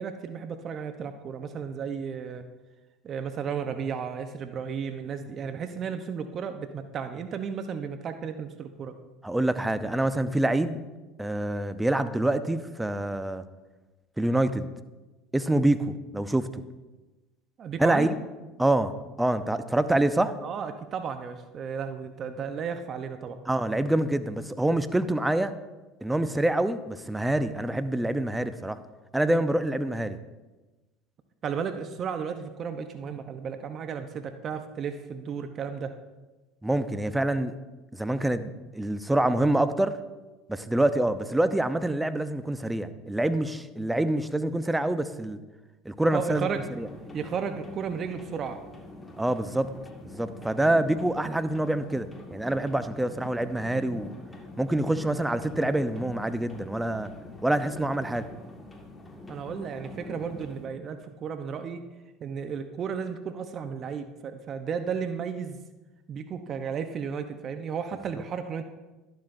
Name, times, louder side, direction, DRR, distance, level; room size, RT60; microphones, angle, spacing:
voice 1, 0.0-2.5 3.0-9.0 17.6-18.1 20.4-23.4 31.4-35.9 46.1-46.7 47.1-48.6 59.3-61.8 62.2-65.6 66.1-68.6, right 6 dB, 45° right, 8 dB, 0.8 m, -34 dB
voice 2, 9.2-10.8 11.2-13.4 14.2-14.7 15.3-16.6 17.8-18.1 18.6-18.9 19.2-20.3 23.5-25.5 26.0-28.8 29.1-30.2 36.6-37.5 37.9-39.9 40.5-45.4 45.8-46.5 46.8-46.9 49.2-49.7 50.1-54.1 54.6-57.1 57.4-58.3, right 1 dB, 10° right, 11 dB, 0.7 m, -26 dB
sound 1, 46.4-60.7, left 2 dB, 20° left, 1.9 m, -45 dB
11.5 x 11.5 x 2.6 m, 1.1 s
hypercardioid pair, 80°, 0 cm